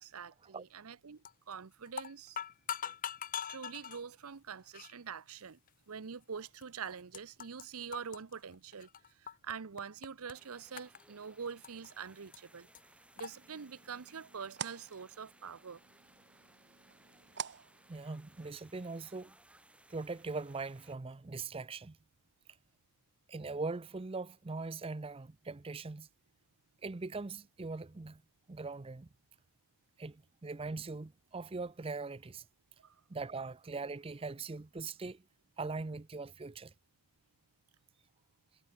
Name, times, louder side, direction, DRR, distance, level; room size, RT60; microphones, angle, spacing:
voice 1, 0.0-2.4 3.5-5.6 5.9-8.9 9.2-12.7 13.2-15.8 32.8-33.0, right 6 dB, 85° right, 0.7 m, -45 dB
sound 1, 1.2-1.5 1.9-4.0 4.7-4.9 5.7-5.8 6.6-6.7 6.9-7.7 7.9-9.5 9.8-10.3 10.8-11.9 12.3-12.4 12.7-12.8 13.2-13.3, left 8 dB, 40° left, 0.8 m, -42 dB
sound 2, 10.3-20.9, right 1 dB, 5° right, 7.4 m, -64 dB
sound 3, 13.2-18.6, right 8 dB, 55° right, 1.2 m, -49 dB
voice 2, 17.9-19.3 19.9-22.0 23.3-26.1 26.8-28.2 28.5-29.1 30.0-32.5 33.1-35.2 35.6-36.7, right 3 dB, 25° right, 0.5 m, -41 dB
head